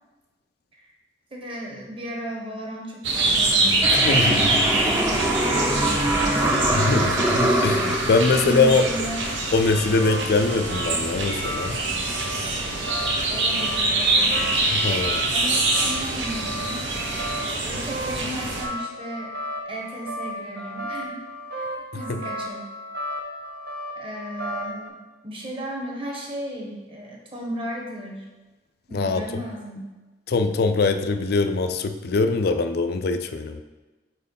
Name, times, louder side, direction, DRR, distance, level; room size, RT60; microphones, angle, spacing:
voice 1, 1.3-3.9 4.2-7.2 8.3-9.3 13.3-14.6 15.3-16.9 17.3-19.3 19.7-21.2 21.6-21.7 21.9-22.7 24.0-25.0 25.2-28.3 28.9-29.9, equal, 30° right, -1 dB, 1.1 m, -35 dB
sound 1, 3.0-18.6, right 2 dB, 80° right, 1.0 m, -25 dB
sound 2, 3.8-9.8, right 1 dB, 10° right, 0.6 m, -24 dB
voice 2, 3.9-4.6 6.7-8.9 9.5-11.8 14.7-15.2 21.9-22.2 28.9-29.4 30.3-33.6, left 3 dB, 55° left, 8 dB, 0.4 m, -22 dB
sound 3, 9.5-24.9, equal, 60° right, 0.7 m, -35 dB
4.5 x 4.3 x 5.3 m, 1.2 s
head